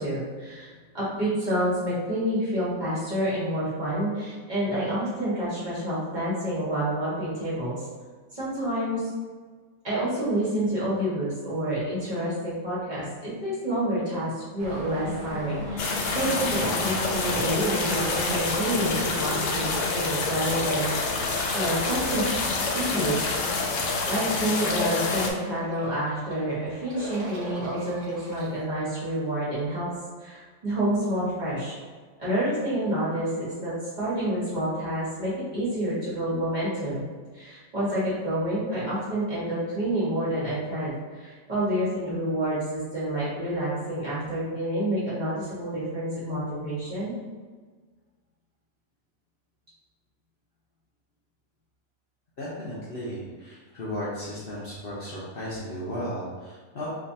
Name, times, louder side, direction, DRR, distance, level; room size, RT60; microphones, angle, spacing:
voice 1, 0.0-7.7 8.3-9.0 9.8-21.1 21.5-23.2 23.6-23.8 24.0-29.9 30.2-31.7 32.2-33.7 34.0-37.0 37.3-47.1, right 1 dB, 35° right, -10 dB, 1.5 m, -28 dB
sound 1, 14.6-23.9, left 1 dB, 85° right, 1.3 m, -35 dB
sound 2, 15.8-25.3, left 4 dB, 70° left, 0.9 m, -28 dB
sound 3, 21.5-28.5, right 1 dB, 65° right, 1.2 m, -42 dB
voice 2, 52.4-56.9, equal, 50° left, -8 dB, 0.8 m, -35 dB
3.5 x 3.0 x 2.7 m, 1.5 s
omnidirectional pair, 1.4 m